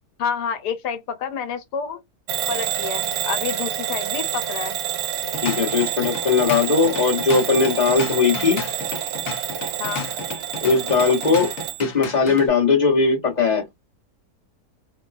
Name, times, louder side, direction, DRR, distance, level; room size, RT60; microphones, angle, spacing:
voice 1, 0.2-2.0 2.5-4.8 9.8-10.1, left 7 dB, 80° left, 1.3 m, -29 dB
Bell / Alarm, 2.3-11.8, right 10 dB, 75° right, 1.2 m, -28 dB
Drum kit / Drum, 5.1-12.5, left 4 dB, 60° left, 1.2 m, -33 dB
voice 2, 5.4-8.6 10.6-11.5 11.8-13.6, left 4 dB, 30° left, 1.2 m, -19 dB
3.0 x 2.2 x 2.4 m
omnidirectional pair, 1.8 m